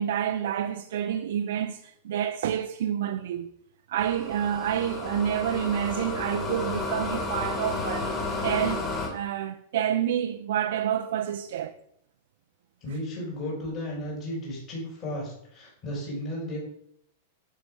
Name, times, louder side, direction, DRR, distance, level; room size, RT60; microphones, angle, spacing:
voice 1, 0.0-3.5 3.9-8.1 8.4-11.7, right 10 dB, 70° right, 0.7 m, -28 dB
sound 1, 4.0-9.1, left 3 dB, 15° left, 2.4 m, -32 dB
voice 2, 12.8-16.6, left 1 dB, 30° left, 4.8 m, -34 dB
10.5 x 4.8 x 6.2 m
supercardioid pair, 165°, 0 cm